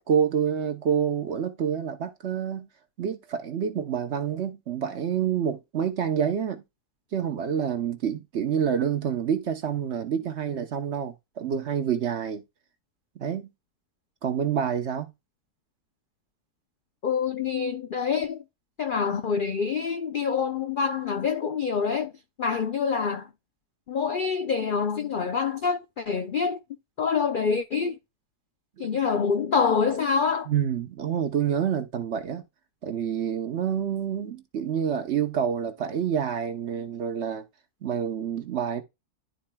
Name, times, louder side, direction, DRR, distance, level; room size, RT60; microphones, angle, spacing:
voice 1, 0.1-2.7 3.0-6.6 7.1-12.4 13.2-13.5 14.2-15.1 28.8-28.9 30.5-32.4 32.8-37.5 37.8-38.8, right 8 dB, 55° right, 0.9 m, -27 dB
voice 2, 17.0-18.4 18.8-22.1 22.4-23.3 23.9-26.6 27.0-28.0 28.8-30.5, left 6 dB, 80° left, 0.4 m, -26 dB
11.5 x 4.2 x 2.2 m
omnidirectional pair, 1.6 m